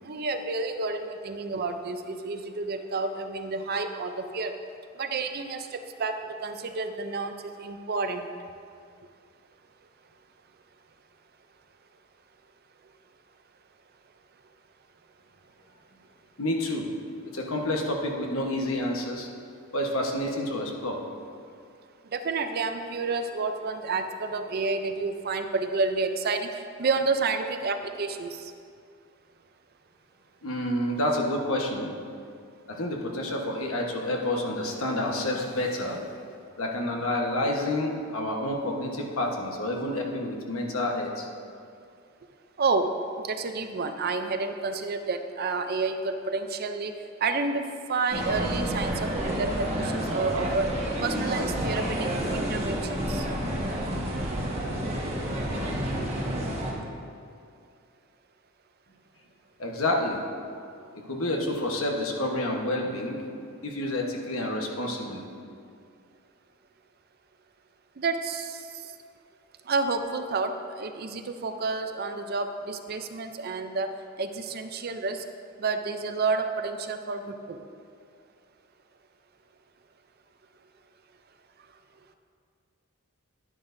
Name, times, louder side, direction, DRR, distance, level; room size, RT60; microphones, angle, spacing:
voice 1, 0.0-4.5 4.9-8.3 22.0-28.5 42.6-47.6 47.9-50.7 51.0-53.3 68.0-68.9 69.7-73.9 74.2-75.3 75.6-77.6, right 3 dB, 45° right, 7 dB, 0.5 m, -30 dB
voice 2, 16.4-16.9 17.3-19.3 19.7-21.0 30.4-31.9 32.7-36.0 36.6-41.3 59.6-60.2 61.1-63.2 63.6-65.3, left 1 dB, 70° left, 1 dB, 1.2 m, -29 dB
sound 1, 48.1-56.7, right 1 dB, 30° right, 1.4 m, -29 dB
11.0 x 10.5 x 2.6 m, 2.3 s
head